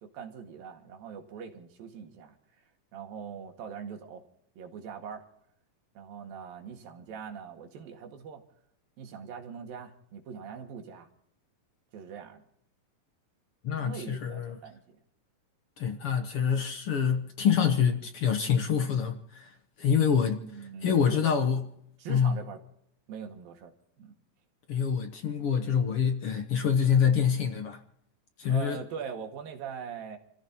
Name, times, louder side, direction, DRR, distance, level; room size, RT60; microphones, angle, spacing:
voice 1, 0.0-2.7 2.9-4.2 4.6-5.3 6.0-8.4 9.0-11.1 11.9-12.4 13.7-15.0 19.8-21.2 22.0-22.6 23.1-23.7 24.0-24.1 28.5-30.2, right 6 dB, 85° right, 3.7 m, -42 dB
voice 2, 13.6-14.6 15.8-21.6 22.1-22.4 24.7-27.8 28.4-28.8, left 7 dB, 60° left, 1.6 m, -26 dB
29.5 x 15.0 x 2.9 m
omnidirectional pair, 4.0 m